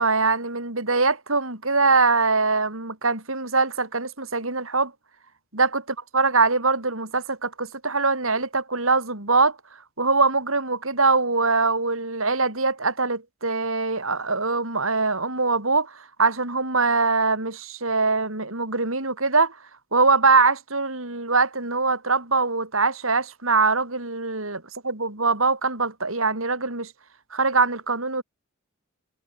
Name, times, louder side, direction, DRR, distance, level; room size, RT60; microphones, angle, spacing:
voice 1, 0.0-4.9 5.5-9.6 10.0-19.5 19.9-26.9 27.3-28.2, right 4 dB, 70° right, 5.9 m, -23 dB
head